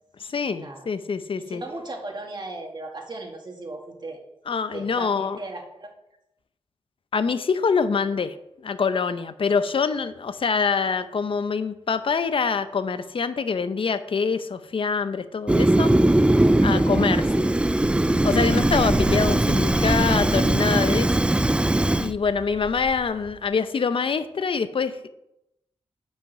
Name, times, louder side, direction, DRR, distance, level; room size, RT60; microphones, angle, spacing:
voice 1, 0.2-1.6 4.5-5.4 7.1-15.9 16.3-17.5 18.2-21.1 22.0-25.1, left 5 dB, 55° left, 12 dB, 0.7 m, -25 dB
voice 2, 1.4-4.2 4.7-5.9, right 2 dB, 45° right, 1 dB, 2.0 m, -37 dB
Fire, 15.5-22.1, right 1 dB, 10° right, 0.3 m, -20 dB
Wind, 17.8-23.5, right 2 dB, 25° right, 1.6 m, -34 dB
8.0 x 5.6 x 6.0 m, 0.85 s
cardioid pair, 75°, 11 cm